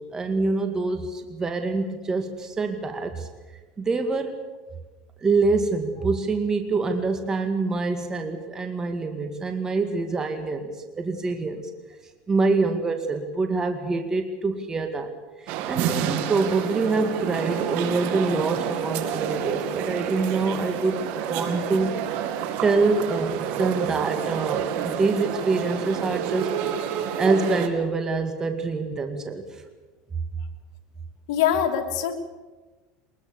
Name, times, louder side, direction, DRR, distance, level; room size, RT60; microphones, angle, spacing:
voice 1, 0.0-3.3 3.8-4.3 5.2-11.6 12.3-15.1 15.7-21.9 22.6-26.5 27.2-29.4, right 3 dB, 20° right, 6 dB, 2.1 m, -25 dB
sound 1, 15.5-27.7, right 9 dB, 60° right, 2.4 m, -29 dB
voice 2, 31.3-32.2, left 9 dB, 75° left, 2 dB, 3.0 m, -23 dB
22.5 x 21.0 x 7.0 m, 1.3 s
supercardioid pair, 130°, 3 cm